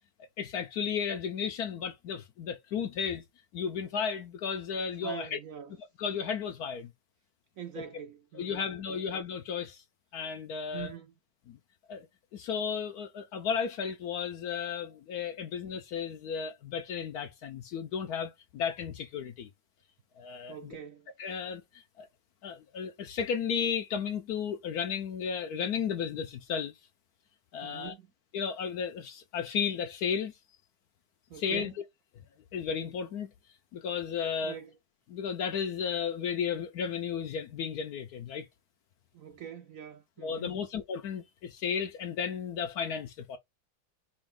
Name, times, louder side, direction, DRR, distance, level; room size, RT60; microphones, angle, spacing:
voice 1, 0.4-3.2 3.5-5.4 6.0-6.9 8.3-9.8 10.1-10.9 11.5-11.6 11.9-12.1 12.3-19.5 20.2-20.8 21.2-22.1 22.4-26.7 27.5-27.9 28.3-30.3 31.4-31.7 32.5-33.3 33.7-34.6 35.1-38.5 40.2-43.4, left 7 dB, 75° left, 0.9 m, -34 dB
voice 2, 5.0-5.8 7.6-9.0 10.7-11.1 20.5-21.1 27.6-28.1 31.3-31.7 34.4-34.8 39.1-40.6, right 8 dB, 75° right, 0.7 m, -44 dB
5.2 x 2.4 x 3.6 m
omnidirectional pair, 2.2 m